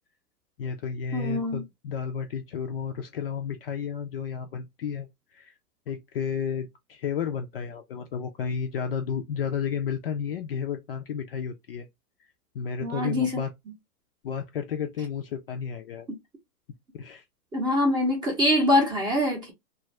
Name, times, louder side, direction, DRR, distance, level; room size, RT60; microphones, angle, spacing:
voice 1, 0.6-5.1 5.3-5.5 5.9-11.9 12.5-13.5 14.2-16.1 16.9-17.2, left 7 dB, 40° left, 0.4 m, -32 dB
voice 2, 1.1-1.6 12.8-13.4 17.5-19.5, left 1 dB, 10° right, 0.6 m, -24 dB
2.6 x 2.4 x 3.1 m
hypercardioid pair, 130°, 48 cm